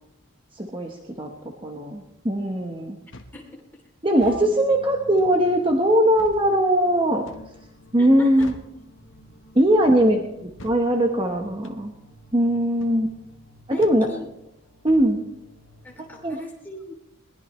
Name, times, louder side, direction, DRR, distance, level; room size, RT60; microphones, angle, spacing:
voice 1, 0.5-3.0 4.0-7.2 7.9-8.5 9.5-11.9 12.3-13.1 13.7-14.1 14.8-15.2 16.0-16.4, equal, 25° right, 2 dB, 1.2 m, -20 dB
sound 1, 3.1-3.4 4.1-4.4 5.2-5.4 6.2-6.4 7.2-7.5 8.4-8.7 9.6-9.8 10.6-10.8 11.6-11.8 12.8-13.0 13.8-14.0 14.9-15.1, left 2 dB, 60° left, 1.3 m, -44 dB
Bowed string instrument, 4.2-7.3, left 1 dB, 70° right, 7.6 m, -47 dB
sound 2, 4.7-16.3, left 1 dB, 40° left, 6.7 m, -51 dB
voice 2, 8.0-8.5 13.7-14.2 15.8-17.0, left 1 dB, 10° left, -1 dB, 3.1 m, -40 dB
22.0 x 19.0 x 3.2 m, 0.81 s
head